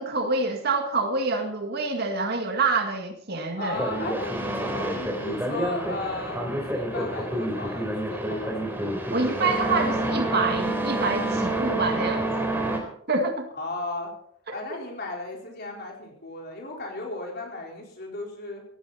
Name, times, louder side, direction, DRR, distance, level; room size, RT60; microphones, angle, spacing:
voice 1, 0.0-3.8 9.1-12.3 13.1-13.5 14.5-14.6, right 3 dB, 50° right, 4 dB, 2.1 m, -26 dB
voice 2, 3.6-8.8 13.6-14.1 14.5-18.6, left 2 dB, 50° left, 0 dB, 4.5 m, -35 dB
sound 1, 3.7-12.8, right 1 dB, 10° right, 3.9 m, -28 dB
18.5 x 15.5 x 4.2 m, 0.65 s
head